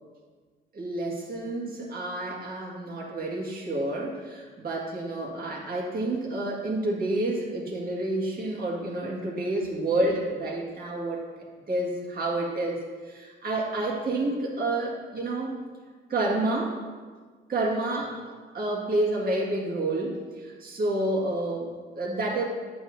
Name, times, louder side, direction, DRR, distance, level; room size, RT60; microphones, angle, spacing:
voice 1, 0.7-11.3 11.7-15.6 16.1-16.8 17.5-22.4, right 2 dB, 45° right, -3 dB, 1.9 m, -29 dB
8.9 x 6.8 x 2.6 m, 1.5 s
cardioid pair, 90°, 20 cm